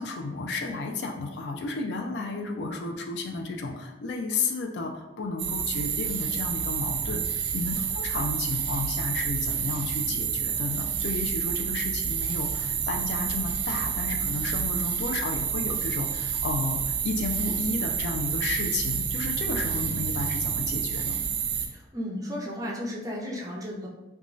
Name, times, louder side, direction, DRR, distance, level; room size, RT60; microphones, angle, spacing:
voice 1, 0.0-21.2, left 3 dB, 75° left, 3 dB, 0.4 m, -32 dB
sound 1, 5.4-21.7, right 7 dB, 85° right, 0.4 m, -29 dB
voice 2, 21.7-23.9, equal, 20° right, -3 dB, 0.4 m, -34 dB
3.0 x 2.2 x 2.5 m, 1.0 s
head